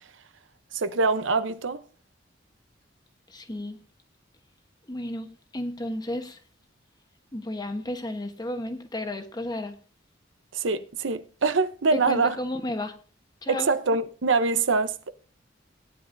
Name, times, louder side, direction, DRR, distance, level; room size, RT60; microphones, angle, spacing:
voice 1, 0.7-1.8 10.5-12.3 13.5-15.1, right 4 dB, 85° right, 0.8 m, -24 dB
voice 2, 3.3-3.8 4.9-6.4 7.3-9.7 11.9-12.9 13.4-13.7, left 1 dB, 20° left, 1.2 m, -33 dB
17.5 x 9.9 x 2.7 m
head